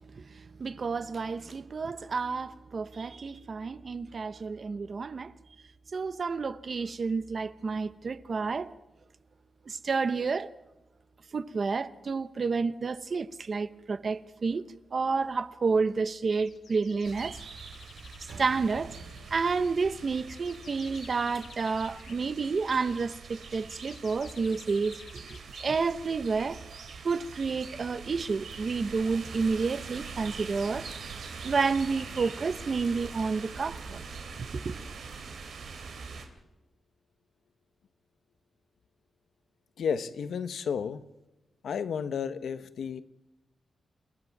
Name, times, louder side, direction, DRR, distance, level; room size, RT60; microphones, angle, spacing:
voice 1, 0.0-5.3 5.9-8.8 9.7-10.5 11.3-14.6 14.9-17.4 18.2-19.0 19.3-25.3 25.6-26.7 27.0-30.8 31.4-34.0 34.4-34.7, right 4 dB, 45° right, 0.8 m, -30 dB
sound 1, 16.3-26.1, left 6 dB, 65° left, 1.4 m, -54 dB
sound 2, 17.0-36.3, right 5 dB, 90° right, 3.0 m, -43 dB
sound 3, 18.3-23.1, right 3 dB, 70° right, 3.7 m, -51 dB
voice 2, 39.8-41.1 41.6-43.0, left 7 dB, 85° left, 1.0 m, -32 dB
29.5 x 15.5 x 6.0 m
wide cardioid pair, 150°, 0 cm